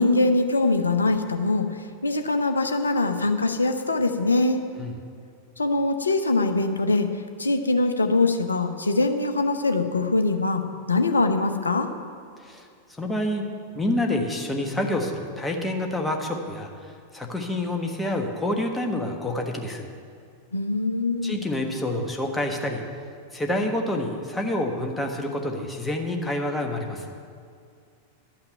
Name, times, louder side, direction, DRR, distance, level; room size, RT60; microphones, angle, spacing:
voice 1, 0.0-4.6 5.6-7.1 7.4-10.6 10.9-11.9 20.5-21.4, left 2 dB, 75° left, 7 dB, 0.7 m, -23 dB
voice 2, 13.0-13.4 13.7-16.7 17.1-19.9 21.2-22.8 23.3-27.1, left 1 dB, 10° left, 2 dB, 1.3 m, -27 dB
11.5 x 5.9 x 8.9 m, 2.3 s
figure-of-eight pair, 90°, 0 cm